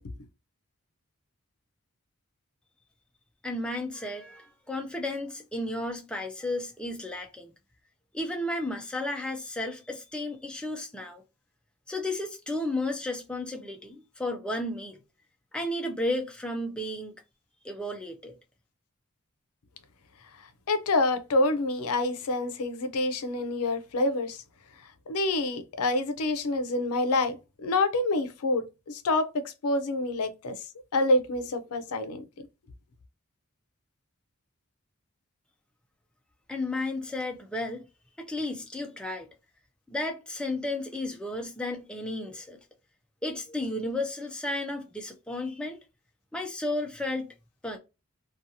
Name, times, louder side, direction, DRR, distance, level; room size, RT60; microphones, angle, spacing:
voice 1, 3.4-7.5 8.1-11.2 11.9-15.0 15.5-17.2 17.6-18.4 36.5-37.8 38.2-39.3 39.9-42.6 43.2-45.8 46.3-47.3 47.6-47.8, left 1 dB, 5° left, 0.3 m, -33 dB
voice 2, 20.7-24.4 25.1-30.7 30.9-32.5, left 2 dB, 85° left, 0.5 m, -27 dB
2.6 x 2.3 x 2.7 m
head